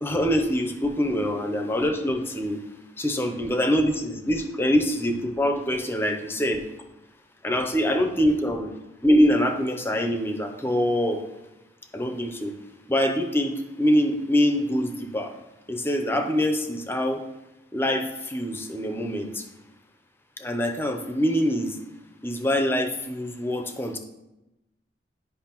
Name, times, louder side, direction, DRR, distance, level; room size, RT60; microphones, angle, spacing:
voice 1, 0.0-2.6 3.0-6.7 7.4-8.7 9.0-11.2 11.9-12.6 12.9-15.4 15.7-17.2 17.7-19.4 20.4-21.8 22.2-24.0, equal, 15° left, 4 dB, 0.5 m, -24 dB
10.0 x 5.5 x 2.9 m, 0.97 s
head